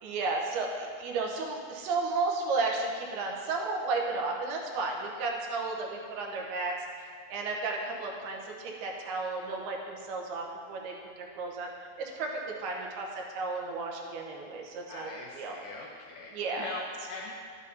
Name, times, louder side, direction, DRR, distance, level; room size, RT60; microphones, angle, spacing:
voice 1, 0.0-6.7 7.3-11.7 12.0-15.1 15.3-15.5 16.3-16.7, right 3 dB, 85° right, 0 dB, 3.0 m, -33 dB
voice 2, 14.9-17.3, left 2 dB, 75° left, -2 dB, 1.9 m, -41 dB
11.5 x 9.8 x 2.7 m, 2.1 s
omnidirectional pair, 4.4 m